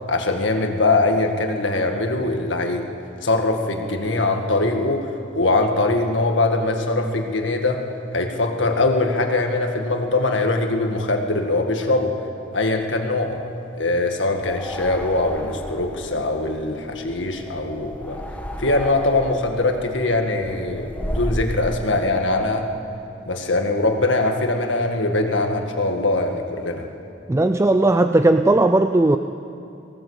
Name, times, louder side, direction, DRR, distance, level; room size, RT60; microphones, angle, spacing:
voice 1, 0.1-2.8 3.2-7.8 8.1-12.2 12.5-13.4 13.7-18.2 18.6-22.7 23.3-26.9, left 2 dB, 80° left, 4 dB, 1.8 m, -22 dB
sound 1, 14.3-21.6, equal, 10° left, 1.2 m, -33 dB
voice 2, 27.3-29.2, right 2 dB, 15° right, 8 dB, 0.4 m, -17 dB
19.0 x 17.0 x 8.2 m, 2.7 s
head